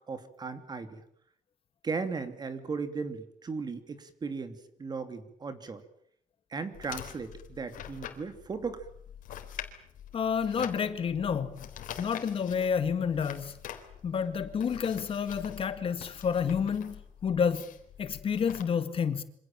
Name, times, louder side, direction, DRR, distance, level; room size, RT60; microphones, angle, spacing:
voice 1, 0.1-1.0 1.8-5.8 6.5-8.8, right 4 dB, 30° right, 2.9 m, -36 dB
sound 1, 6.7-18.6, left 10 dB, 80° left, 3.8 m, -45 dB
voice 2, 10.1-11.6 12.0-13.5 14.0-17.6 18.0-19.2, left 7 dB, 40° left, 2.0 m, -29 dB
27.5 x 26.0 x 7.5 m
cardioid pair, 145°, 14 cm